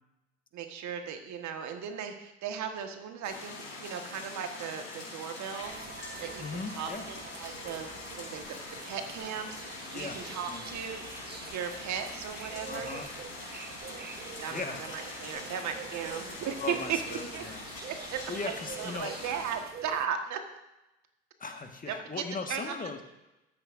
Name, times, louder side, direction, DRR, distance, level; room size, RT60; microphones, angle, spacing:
voice 1, 0.5-5.9 6.2-8.4 8.8-12.9 14.4-17.0 17.3-17.4 18.1-20.4 21.9-22.0 22.5-22.7, right 8 dB, 55° right, 6 dB, 1.5 m, -37 dB
sound 1, 3.2-19.6, left 3 dB, 80° left, 3.8 m, -43 dB
sound 2, 5.6-20.1, right 7 dB, 30° right, 0.7 m, -46 dB
voice 2, 6.4-7.1 9.9-10.2 10.5-10.6 12.7-13.1 14.5-14.8 16.6-17.6 18.3-19.1 21.4-23.0, left 4 dB, 25° left, 5 dB, 1.6 m, -38 dB
14.0 x 12.5 x 2.6 m, 0.95 s
hypercardioid pair, 65°, 34 cm